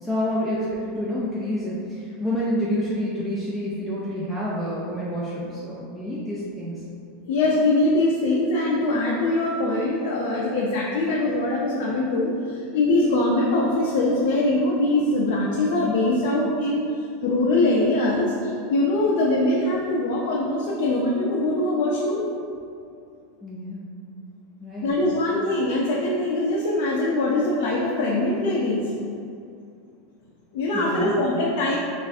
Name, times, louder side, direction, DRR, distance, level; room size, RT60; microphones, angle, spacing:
voice 1, 0.0-6.8 23.4-23.8 24.6-24.9 30.7-31.4, equal, ahead, -9 dB, 0.4 m, -28 dB
voice 2, 7.3-22.2 24.8-28.9 30.5-31.8, left 2 dB, 70° left, -4 dB, 0.4 m, -22 dB
4.0 x 2.5 x 2.6 m, 2.4 s
supercardioid pair, 155°, 0 cm